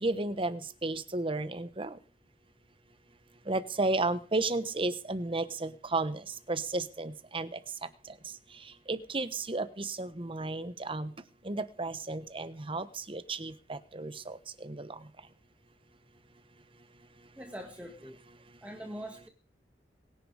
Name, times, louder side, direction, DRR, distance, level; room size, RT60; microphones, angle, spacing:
voice 1, 0.0-1.9 3.5-6.2 6.5-7.5 8.9-11.1 11.4-14.9, right 2 dB, 30° right, 13 dB, 1.1 m, -33 dB
voice 2, 17.4-18.2 18.6-19.3, equal, 10° right, 2 dB, 2.0 m, -43 dB
22.5 x 10.5 x 4.9 m, 0.38 s
head